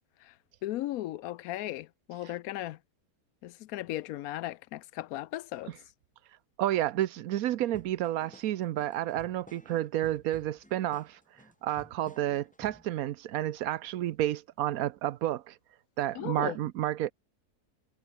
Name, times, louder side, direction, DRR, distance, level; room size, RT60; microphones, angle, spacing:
voice 1, 0.6-2.8 3.4-5.7 16.1-16.6, left 15 dB, 70° left, 1.0 m, -36 dB
voice 2, 6.6-11.2 11.6-15.5 16.0-17.1, right 13 dB, 70° right, 1.1 m, -30 dB
sound 1, 7.7-12.9, left 1 dB, 5° left, 1.4 m, -55 dB
omnidirectional pair, 1.7 m